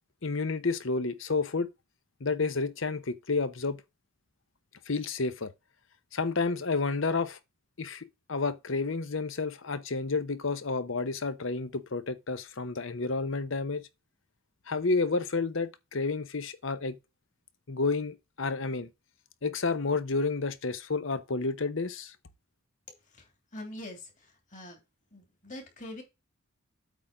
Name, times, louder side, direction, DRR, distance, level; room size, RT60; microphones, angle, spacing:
voice 1, 0.2-1.7 2.2-3.8 4.9-5.5 6.1-7.4 7.8-13.8 14.7-17.0 17.7-18.9 19.4-22.1, left 3 dB, 60° left, 0.9 m, -30 dB
voice 2, 23.1-24.8 25.1-26.0, left 1 dB, 35° left, 3.0 m, -44 dB
8.4 x 3.8 x 6.0 m
head